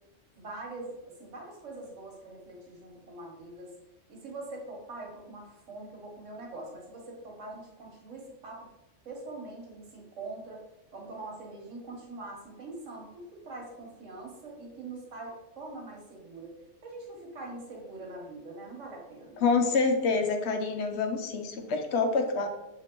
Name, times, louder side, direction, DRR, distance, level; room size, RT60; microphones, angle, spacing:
voice 1, 0.3-3.7 4.1-8.7 9.0-10.6 10.9-16.5 16.8-19.4, right 2 dB, 90° right, -1 dB, 1.4 m, -43 dB
voice 2, 19.4-22.5, left 4 dB, 70° left, 5 dB, 0.9 m, -27 dB
6.3 x 2.8 x 2.9 m, 0.96 s
omnidirectional pair, 1.2 m